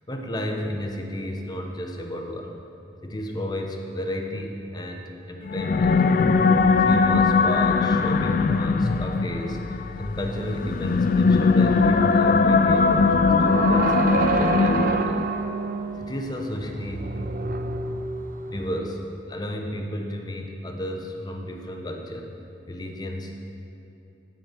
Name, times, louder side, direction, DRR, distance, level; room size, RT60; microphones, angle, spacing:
voice 1, 0.1-2.5 3.0-6.0 6.8-15.3 16.0-17.1 18.5-19.0 19.3-22.3 22.7-23.3, equal, 20° left, 2 dB, 0.8 m, -33 dB
sound 1, 5.5-15.3, left 4 dB, 50° left, 0.3 m, -20 dB
sound 2, 12.7-18.7, right 3 dB, 50° right, 0.5 m, -28 dB
15.0 x 6.1 x 4.5 m, 3.0 s
head